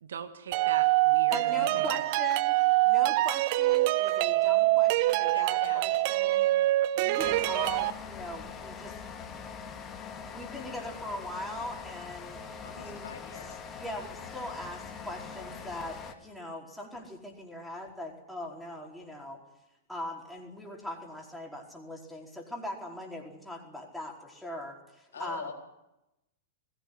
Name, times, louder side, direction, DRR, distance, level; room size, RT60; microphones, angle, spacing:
voice 1, 0.0-2.0, right 7 dB, 65° right, 8 dB, 1.9 m, -40 dB
sound 1, 0.5-7.9, right 17 dB, 45° right, 0.7 m, -25 dB
voice 2, 1.3-2.6 2.8-6.5 6.9-8.9 10.2-13.1 13.8-19.4 19.9-25.5, left 1 dB, ahead, -1 dB, 4.7 m, -40 dB
voice 3, 5.3-6.1 12.6-13.6 25.1-25.5, left 6 dB, 65° left, 2 dB, 4.1 m, -43 dB
sound 2, 7.2-16.1, left 6 dB, 20° left, 2.4 m, -43 dB
21.0 x 16.5 x 9.6 m, 0.93 s
figure-of-eight pair, 95°, 0 cm